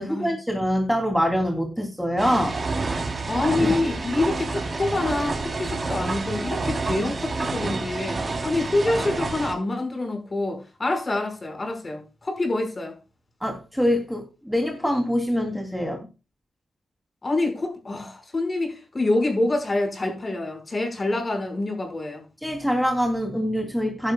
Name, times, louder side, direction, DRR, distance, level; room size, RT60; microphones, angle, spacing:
voice 1, 0.0-2.6 3.6-3.7 13.4-16.1 22.4-24.1, equal, ahead, 3.1 m, -24 dB
sound 1, 2.2-9.5, right 3 dB, 40° right, 3.6 m, -28 dB
voice 2, 3.3-13.0 17.2-22.2, left 2 dB, 35° left, 5.5 m, -26 dB
15.5 x 11.5 x 2.4 m
cardioid pair, 90°, 0 cm